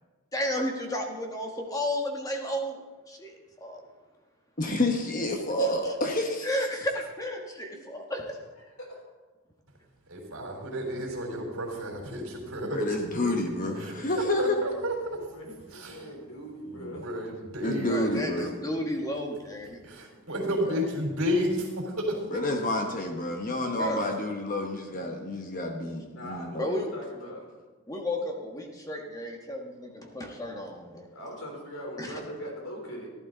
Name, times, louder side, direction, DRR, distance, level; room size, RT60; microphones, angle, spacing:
voice 1, 0.3-2.8 3.1-3.8 6.4-8.2 17.9-19.8 23.7-24.0 26.6-26.9 27.9-31.0 32.0-32.1, left 1 dB, 15° left, 1 dB, 1.3 m, -33 dB
voice 2, 4.6-6.6 12.7-14.6 17.6-18.5 20.7-20.8 22.3-26.7, left 1 dB, 35° left, 3 dB, 1.0 m, -29 dB
voice 3, 8.6-9.0 15.3-17.1 26.2-27.5 31.1-33.1, equal, 65° left, 0 dB, 3.7 m, -41 dB
voice 4, 10.1-12.8 13.2-13.3 13.8-15.3 15.7-16.1 16.7-18.2 19.8-22.4, equal, 70° right, 0 dB, 3.6 m, -32 dB
14.5 x 11.5 x 3.9 m, 1.3 s
head